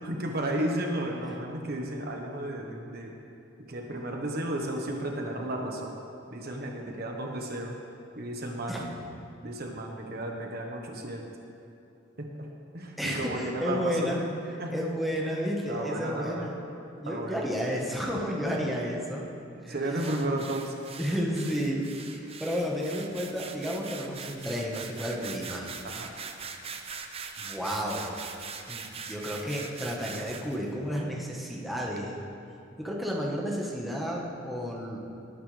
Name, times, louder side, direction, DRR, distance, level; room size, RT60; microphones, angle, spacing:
voice 1, 0.0-3.1 3.7-6.0 6.3-7.8 8.1-8.8 9.4-11.3 12.2-12.5 12.7-14.2 14.6-14.8 15.2-16.4 17.0-17.4 19.5-20.8 25.8-26.1, right 1 dB, 55° right, 1 dB, 1.3 m, -33 dB
voice 2, 13.0-14.2 14.5-16.6 17.0-19.2 19.6-20.1 21.0-21.8 22.1-25.7 27.4-28.1 28.7-32.2 32.8-35.0, equal, ahead, -3 dB, 1.4 m, -32 dB
sound 1, 19.9-30.6, right 5 dB, 30° right, 0.7 m, -42 dB
19.0 x 9.5 x 3.4 m, 2.8 s
head